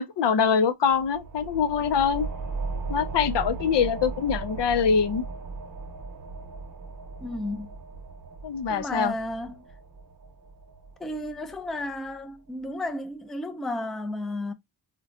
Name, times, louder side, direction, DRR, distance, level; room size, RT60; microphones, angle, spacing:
voice 1, 0.0-2.3 2.9-5.2 8.4-9.1, left 6 dB, 85° left, 0.6 m, -24 dB
sound 1, 0.9-12.1, right 3 dB, 50° right, 0.7 m, -37 dB
voice 2, 7.2-7.7 8.7-9.6 11.0-14.5, left 1 dB, ahead, 0.3 m, -33 dB
3.8 x 2.2 x 2.5 m
wide cardioid pair, 125°, 41 cm